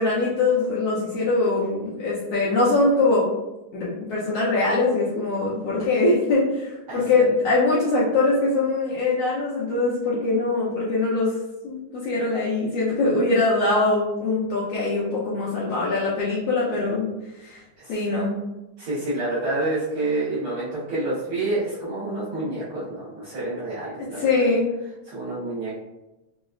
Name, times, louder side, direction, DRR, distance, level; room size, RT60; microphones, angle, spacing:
voice 1, 0.0-3.3 3.7-11.3 11.6-17.1 17.4-17.6 17.9-18.3 24.2-24.7, left 3 dB, 75° left, -7 dB, 1.5 m, -22 dB
voice 2, 6.9-7.2 17.8-18.0 18.8-24.5 25.0-25.7, right 2 dB, 65° right, -9 dB, 1.4 m, -28 dB
5.0 x 2.0 x 2.3 m, 0.99 s
omnidirectional pair, 3.5 m